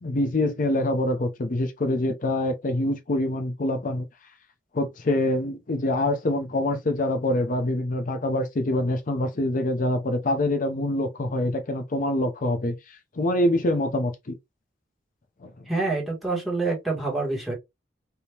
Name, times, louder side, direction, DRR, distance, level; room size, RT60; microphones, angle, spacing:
voice 1, 0.0-4.1 4.7-14.4 15.4-15.6, left 1 dB, 45° left, 0.5 m, -25 dB
voice 2, 15.7-17.5, right 3 dB, ahead, 1.5 m, -27 dB
3.4 x 2.8 x 2.8 m
head